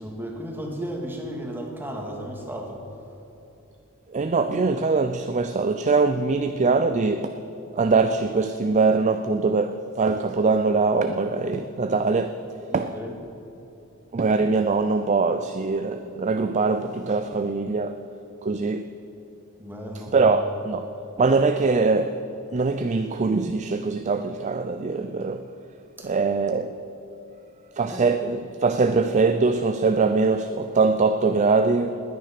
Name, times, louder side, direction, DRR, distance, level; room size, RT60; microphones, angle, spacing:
voice 1, 0.0-2.8 12.7-13.2 19.6-20.4 26.0-26.2 27.8-28.2, equal, 10° right, 2.0 m, -34 dB
voice 2, 4.1-7.4 7.7-12.3 12.7-12.9 14.1-18.0 18.4-18.9 20.1-20.9 21.2-22.2 22.5-25.4 26.0-26.7 27.8-32.0, right 4 dB, 35° right, 0.4 m, -22 dB
19.5 x 9.5 x 5.9 m
head